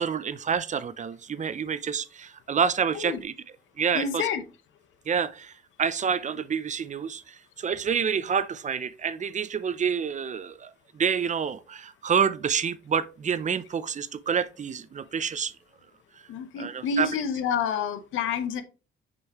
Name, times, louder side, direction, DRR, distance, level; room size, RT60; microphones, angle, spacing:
voice 1, 0.0-3.3 3.8-4.2 5.1-5.5 5.8-15.5 16.6-17.1, right 7 dB, 40° right, 0.6 m, -28 dB
voice 2, 3.9-4.4 16.3-18.6, left 6 dB, 85° left, 0.9 m, -28 dB
6.5 x 5.3 x 3.1 m
cardioid pair, 90°, 20 cm